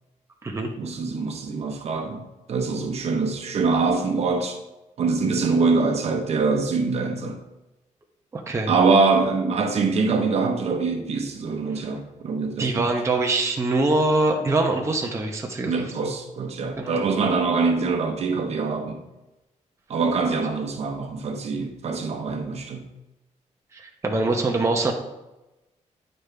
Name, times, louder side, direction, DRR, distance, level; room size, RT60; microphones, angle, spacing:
voice 1, 0.8-2.2 2.5-4.6 5.0-7.4 8.7-12.9 15.7-19.0 19.9-22.8, right 4 dB, 55° right, 4 dB, 1.0 m, -24 dB
voice 2, 8.3-8.7 12.6-15.9 16.8-17.0 23.7-24.9, right 2 dB, 20° right, 1 dB, 0.9 m, -23 dB
10.0 x 5.2 x 3.4 m, 0.98 s
cardioid pair, 140°, 13 cm